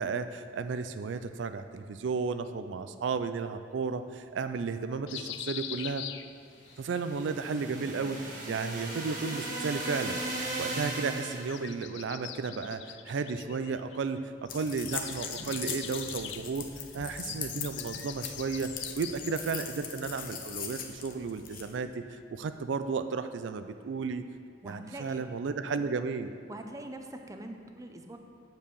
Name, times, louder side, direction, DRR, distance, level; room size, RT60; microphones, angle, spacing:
voice 1, 0.0-6.0 6.8-10.2 10.6-16.7 16.9-18.7 19.0-22.0 22.3-24.2 24.6-26.3, right 5 dB, 85° right, 10 dB, 0.4 m, -33 dB
sound 1, 5.1-6.8 8.2-9.3 11.2-14.2 14.5-19.6, left 11 dB, 70° left, 0.4 m, -44 dB
sound 2, 6.7-11.6, right 1 dB, 45° right, 1.5 m, -37 dB
sound 3, 14.5-21.7, left 6 dB, 50° left, 0.8 m, -40 dB
voice 2, 24.6-25.3 26.5-28.2, right 1 dB, 20° right, 5 dB, 0.5 m, -43 dB
7.7 x 4.7 x 6.9 m, 2.1 s
head